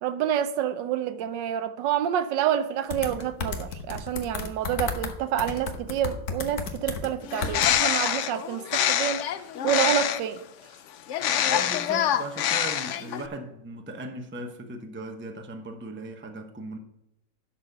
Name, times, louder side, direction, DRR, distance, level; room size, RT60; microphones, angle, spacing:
voice 1, 0.0-9.3 9.6-10.4, right 10 dB, 80° right, 1.4 m, -28 dB
sound 1, 2.9-5.1 5.4-7.1 7.4-7.8, left 5 dB, 60° left, 1.4 m, -32 dB
Bird, 7.2-10.4 11.1-13.3, left 10 dB, 85° left, 0.6 m, -25 dB
voice 2, 11.4-16.8, right 2 dB, 10° right, 0.5 m, -38 dB
11.5 x 4.2 x 6.5 m
omnidirectional pair, 1.9 m